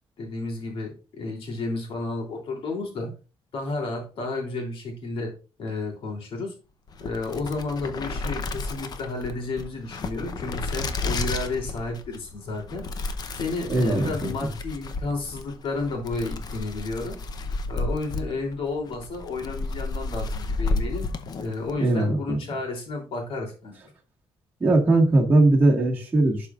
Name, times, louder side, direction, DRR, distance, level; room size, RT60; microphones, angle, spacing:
voice 1, 0.2-3.1 3.5-5.3 5.6-6.5 7.0-17.2 17.7-21.1 21.4-23.8, left 3 dB, 65° left, 0 dB, 3.1 m, -32 dB
sound 1, 6.9-21.8, left 3 dB, 40° left, 0.7 m, -32 dB
voice 2, 13.7-14.3 21.8-22.4 24.6-26.5, right 2 dB, 20° right, -3 dB, 1.7 m, -20 dB
11.5 x 4.8 x 2.5 m, 0.32 s
cardioid pair, 165°, 10 cm